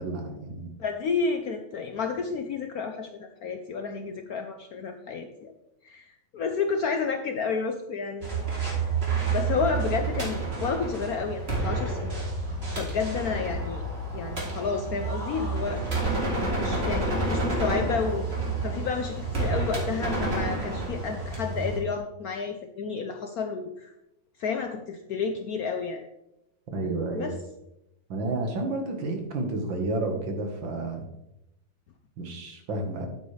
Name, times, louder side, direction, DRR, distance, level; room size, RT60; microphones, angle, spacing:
voice 1, 0.0-0.7 26.7-27.4 28.1-31.1 32.2-33.1, right 2 dB, 70° right, 3 dB, 2.2 m, -31 dB
voice 2, 0.8-5.5 5.8-8.9 9.3-12.2 12.7-13.8 14.1-15.8 16.6-18.3 18.6-23.9 24.4-26.0 27.1-27.4, left 5 dB, 65° left, 5 dB, 0.9 m, -31 dB
sound 1, 8.2-21.8, right 3 dB, 30° right, 2.8 m, -29 dB
9.5 x 9.0 x 3.3 m, 0.87 s
omnidirectional pair, 2.2 m